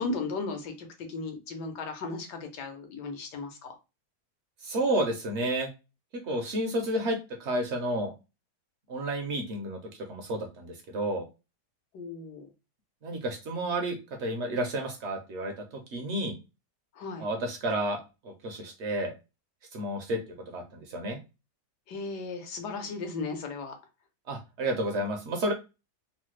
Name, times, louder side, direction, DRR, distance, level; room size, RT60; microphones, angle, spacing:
voice 1, 0.0-3.8 11.9-12.5 17.0-17.3 21.9-23.8, left 3 dB, 80° left, 4 dB, 1.3 m, -36 dB
voice 2, 4.6-5.7 6.2-8.1 8.9-9.8 10.1-11.2 13.0-15.5 15.9-16.3 17.2-19.1 19.7-20.2 20.5-21.2 24.3-25.5, right 1 dB, 70° right, 4 dB, 0.6 m, -31 dB
3.1 x 2.1 x 3.0 m, 0.28 s
omnidirectional pair, 1.8 m